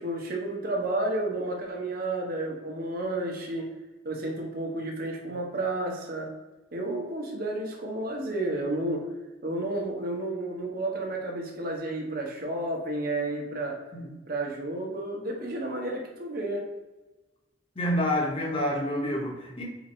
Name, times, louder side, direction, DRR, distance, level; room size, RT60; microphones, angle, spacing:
voice 1, 0.0-3.7 4.0-6.3 6.7-9.0 9.4-13.8 14.3-16.7, right 2 dB, 55° right, 0 dB, 1.0 m, -31 dB
voice 2, 17.8-19.6, left 1 dB, 30° left, -1 dB, 0.9 m, -28 dB
4.0 x 2.6 x 4.2 m, 1.1 s
head